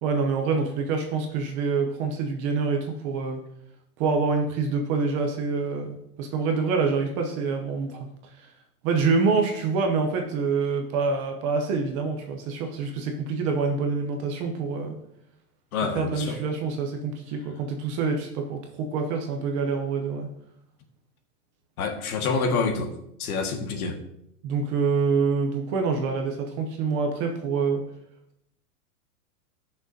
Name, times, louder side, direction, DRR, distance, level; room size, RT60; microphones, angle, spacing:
voice 1, 0.0-3.4 4.0-8.1 8.8-15.0 15.9-20.3 24.4-27.8, right 4 dB, 20° right, 3 dB, 0.6 m, -26 dB
voice 2, 15.7-16.4 21.8-22.9 23.2-24.0, left 4 dB, 70° left, 4 dB, 1.8 m, -27 dB
15.0 x 6.4 x 2.7 m, 0.77 s
supercardioid pair, 165°, 46 cm